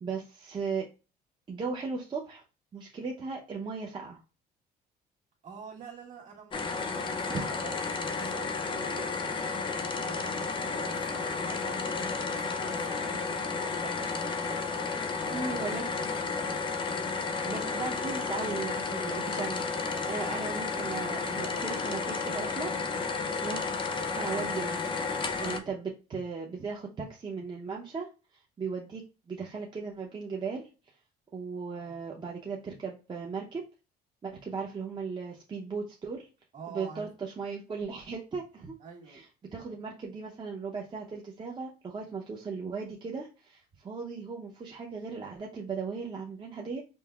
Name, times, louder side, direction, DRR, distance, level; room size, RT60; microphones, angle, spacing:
voice 1, 0.0-0.9 1.5-2.4 2.7-4.2 15.3-15.9 17.4-23.6 24.1-24.8 25.4-28.1 28.3-29.0 29.3-30.7 31.3-33.6 34.2-36.3 36.7-38.7 39.1-46.8, right 5 dB, 25° right, -1 dB, 0.7 m, -37 dB
voice 2, 5.4-14.6 15.2-16.4 36.5-37.1 38.8-39.2, right 6 dB, 45° right, 0 dB, 1.7 m, -48 dB
sound 1, 6.5-25.6, left 4 dB, 30° left, 0.5 m, -32 dB
5.3 x 2.0 x 2.3 m, 0.31 s
cardioid pair, 110°, 17 cm